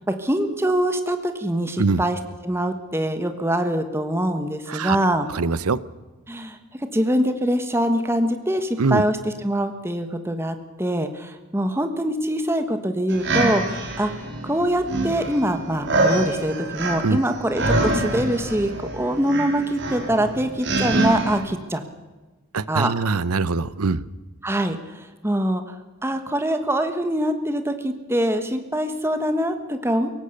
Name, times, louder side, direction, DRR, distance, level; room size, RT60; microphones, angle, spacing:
voice 1, 0.1-2.2 2.4-5.3 6.3-6.6 6.9-9.2 9.4-14.1 14.4-21.8 22.7-22.9 24.4-25.6 26.0-30.1, right 1 dB, 10° right, 7 dB, 1.3 m, -24 dB
voice 2, 5.3-5.8 8.8-9.0 17.0-17.2 22.5-24.0, right 4 dB, 85° right, 18 dB, 0.8 m, -22 dB
sound 1, 13.1-21.4, right 2 dB, 50° right, 4.4 m, -25 dB
23.0 x 18.5 x 6.7 m, 1.2 s
head